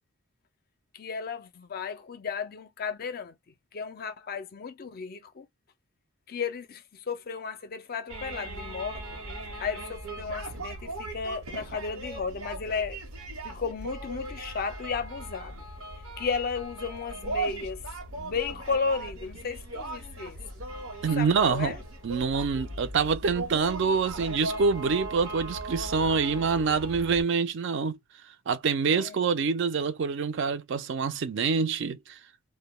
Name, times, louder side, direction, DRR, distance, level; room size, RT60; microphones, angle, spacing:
voice 1, 0.9-3.4 3.7-5.5 6.3-9.2 9.6-13.0 13.4-15.6 16.2-17.8 18.2-20.4 21.0-21.8 28.9-29.3, left 5 dB, 45° left, 0.4 m, -34 dB
sound 1, 8.1-27.2, right 2 dB, 85° right, 1.0 m, -38 dB
voice 2, 21.0-21.7 22.0-28.0 28.5-32.2, right 5 dB, 60° right, 0.4 m, -26 dB
2.2 x 2.1 x 2.9 m
head